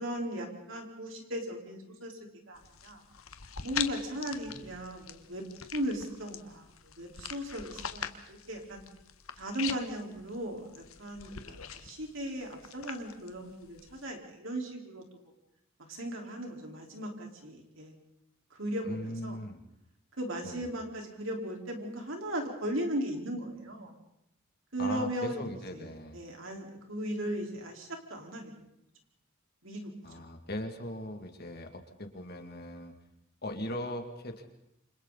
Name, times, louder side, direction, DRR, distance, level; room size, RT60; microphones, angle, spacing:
voice 1, 0.0-2.2 2.5-3.0 3.6-5.4 5.7-8.8 9.3-15.0 15.9-17.9 18.5-19.4 20.2-23.9 24.7-25.4 25.7-28.5 29.6-30.2, right 1 dB, 65° right, 1 dB, 4.6 m, -37 dB
sound 1, 2.5-14.1, left 8 dB, 85° left, 1.4 m, -43 dB
voice 2, 18.8-19.6 20.4-20.6 24.8-26.2 30.0-32.9 33.4-34.5, left 1 dB, 50° left, 5 dB, 2.5 m, -39 dB
28.5 x 26.5 x 4.2 m, 0.80 s
head